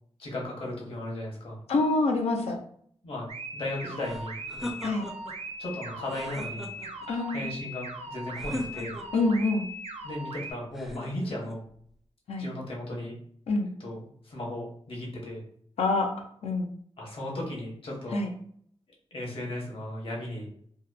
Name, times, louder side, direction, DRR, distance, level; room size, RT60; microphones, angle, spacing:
voice 1, 0.2-1.6 3.0-4.9 5.6-6.7 7.3-9.0 10.0-11.6 12.4-13.2 13.8-15.4 17.0-18.2 19.1-20.5, left 1 dB, 60° left, -2 dB, 0.9 m, -36 dB
voice 2, 1.7-2.6 4.8-5.1 7.1-7.5 9.1-9.7 12.3-12.5 13.5-13.7 15.8-16.1 16.4-16.7 18.1-18.3, left 3 dB, 85° left, 2 dB, 0.4 m, -26 dB
sound 1, 3.3-10.5, right 1 dB, 85° right, 0.4 m, -39 dB
sound 2, 4.0-5.4 6.0-7.1 8.4-9.3 10.7-11.6, left 1 dB, ahead, 0.4 m, -39 dB
2.8 x 2.0 x 2.2 m, 0.63 s
wide cardioid pair, 100°, 11 cm